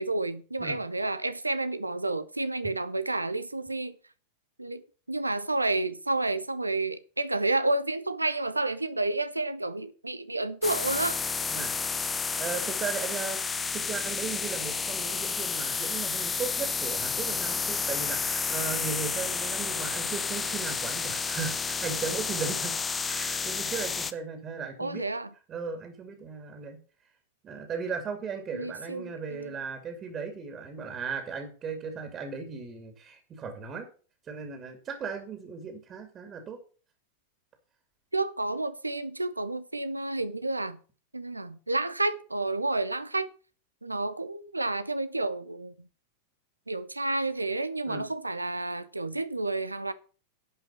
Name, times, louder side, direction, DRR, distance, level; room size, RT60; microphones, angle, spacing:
voice 1, 0.0-4.0 4.6-4.8 5.1-11.2 24.8-25.3 28.5-29.5 38.1-40.8 41.1-43.3 43.8-45.9 46.7-49.9, right 2 dB, 85° right, 0.7 m, -30 dB
sound 1, 10.6-24.1, left 5 dB, 15° left, 0.7 m, -31 dB
voice 2, 12.4-13.4 13.7-22.7 23.1-25.0 25.5-26.8 27.4-33.9 34.3-36.6 47.8-48.0, right 5 dB, 25° right, 2.5 m, -36 dB
11.0 x 5.5 x 7.0 m
figure-of-eight pair, 90°, 0 cm